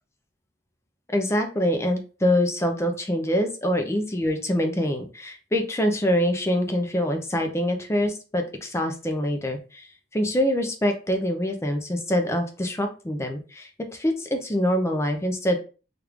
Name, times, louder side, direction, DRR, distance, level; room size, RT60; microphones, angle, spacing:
voice 1, 1.1-9.9 10.1-15.6, equal, 15° left, 5 dB, 0.5 m, -25 dB
3.1 x 2.5 x 3.4 m, 0.35 s
head